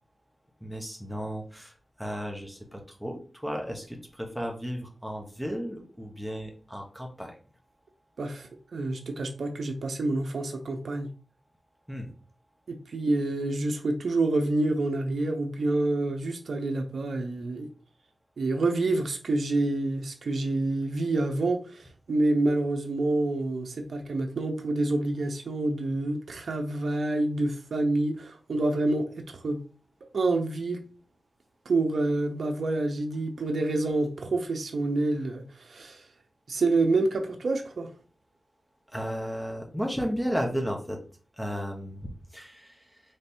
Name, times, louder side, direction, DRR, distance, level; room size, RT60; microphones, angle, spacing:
voice 1, 0.6-7.4 11.9-12.1 38.9-41.0 41.4-43.0, equal, ahead, 1 dB, 1.2 m, -34 dB
voice 2, 8.2-11.1 12.7-17.7 18.4-29.6 30.1-30.8 31.7-36.0 36.5-37.9, right 2 dB, 75° right, 4 dB, 0.6 m, -27 dB
3.3 x 3.2 x 4.3 m, 0.39 s
cardioid pair, 60°, 0 cm